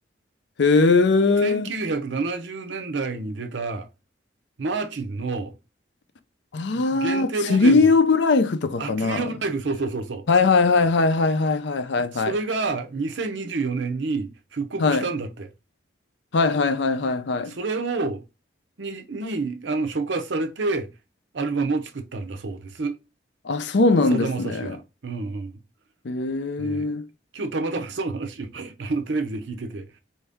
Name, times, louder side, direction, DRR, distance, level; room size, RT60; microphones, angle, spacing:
voice 1, 0.6-1.7 6.5-9.3 10.3-12.4 14.8-15.1 16.3-17.5 23.4-24.8 26.0-27.1, left 3 dB, 65° left, 0.5 m, -20 dB
voice 2, 1.4-3.9 4.6-5.6 6.7-7.9 8.8-10.3 12.1-15.5 17.5-18.2 18.8-20.9 21.3-23.0 24.1-25.6 26.6-27.0 27.3-29.9, right 3 dB, 70° right, 0.6 m, -28 dB
4.3 x 2.7 x 3.4 m
head